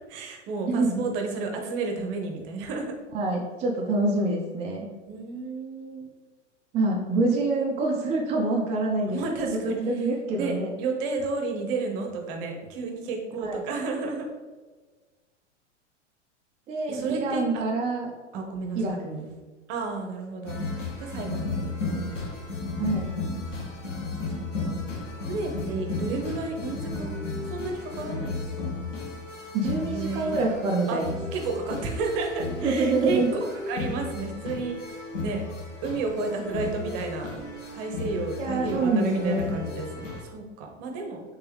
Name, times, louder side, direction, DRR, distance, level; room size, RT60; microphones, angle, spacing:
voice 1, 0.1-2.9 5.1-6.1 9.1-10.1 10.4-14.3 16.9-17.7 18.3-19.0 19.7-20.6 21.0-21.7 22.1-22.2 24.6-24.8 25.3-28.7 29.9-30.3 30.9-31.0 31.3-33.2 33.7-35.4 35.8-37.5 37.7-41.2, right 3 dB, 50° right, 2 dB, 0.9 m, -32 dB
voice 2, 0.7-1.0 3.1-4.9 6.7-10.7 13.4-13.6 16.7-18.1 18.8-19.3 22.8-23.1 29.5-31.1 32.6-33.5 38.4-39.5, right 2 dB, 20° right, -1 dB, 0.4 m, -26 dB
sound 1, 20.5-40.3, left 3 dB, 85° left, 0.9 m, -34 dB
3.5 x 3.3 x 3.5 m, 1.3 s
hypercardioid pair, 95°, 36 cm